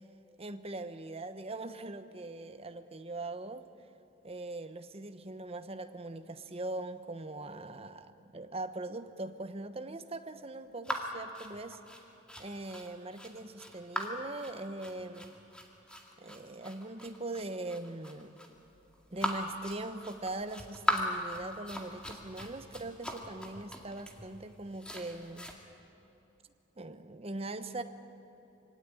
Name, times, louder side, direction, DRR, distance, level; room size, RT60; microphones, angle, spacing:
voice 1, 0.4-3.7 4.2-11.8 12.4-15.4 16.2-18.4 19.1-25.5 26.8-27.8, right 2 dB, 30° right, 10 dB, 1.0 m, -41 dB
sound 1, 10.8-25.5, equal, 5° left, 2.0 m, -39 dB
24.5 x 17.0 x 9.9 m, 2.9 s
head